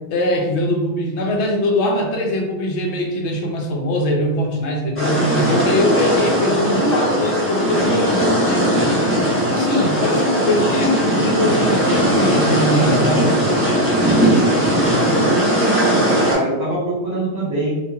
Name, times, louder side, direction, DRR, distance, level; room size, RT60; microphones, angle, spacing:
voice 1, 0.1-8.7 9.5-13.4, left 1 dB, 75° left, 1 dB, 0.9 m, -21 dB
sound 1, 5.0-16.3, right 1 dB, 15° left, 0.7 m, -18 dB
voice 2, 14.9-17.8, right 1 dB, 40° right, -6 dB, 1.1 m, -23 dB
2.8 x 2.4 x 2.3 m, 1.1 s
omnidirectional pair, 1.2 m